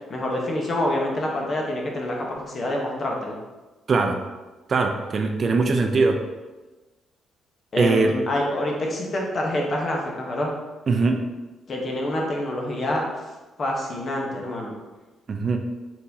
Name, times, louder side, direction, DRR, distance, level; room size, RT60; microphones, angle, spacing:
voice 1, 0.1-3.4 7.7-10.5 11.7-13.0 13.6-14.7, left 1 dB, 45° left, -1 dB, 1.0 m, -26 dB
voice 2, 3.9-4.2 4.7-6.2 7.8-8.1 10.9-11.2 15.3-15.6, right 3 dB, 45° right, 5 dB, 0.5 m, -21 dB
4.4 x 4.1 x 2.7 m, 1.2 s
cardioid pair, 90°, 0 cm